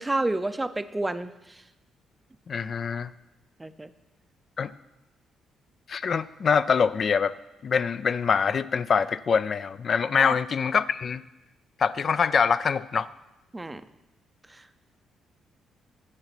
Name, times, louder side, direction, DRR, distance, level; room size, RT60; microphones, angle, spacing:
voice 1, 0.0-1.6 3.6-3.9 10.2-10.3 13.5-13.8 14.5-14.6, right 2 dB, 15° right, 12 dB, 0.5 m, -30 dB
voice 2, 2.5-3.1 4.6-4.7 5.9-7.3 7.6-11.2 11.8-13.1, left 6 dB, 50° left, 16 dB, 0.3 m, -24 dB
9.7 x 7.0 x 5.9 m, 0.97 s
cardioid pair, 90°, 0 cm